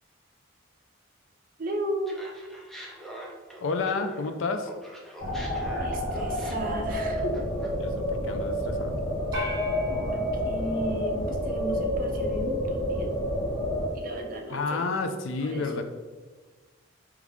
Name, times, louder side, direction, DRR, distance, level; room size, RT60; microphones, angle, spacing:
voice 1, 1.6-2.2 5.8-7.4 9.3-9.4 9.9-13.1 13.9-14.9 15.4-15.8, right 1 dB, 45° right, 2 dB, 0.6 m, -35 dB
Laughter, 2.1-4.3 4.6-7.8, right 1 dB, ahead, 0.5 m, -44 dB
voice 2, 3.6-4.7 7.8-9.0 14.5-15.8, left 4 dB, 70° left, 7 dB, 0.4 m, -30 dB
sound 1, 5.2-13.9, equal, 40° left, 1.1 m, -29 dB
sound 2, 9.3-11.8, left 1 dB, 15° right, 1.4 m, -40 dB
3.5 x 3.1 x 3.5 m, 1.3 s
head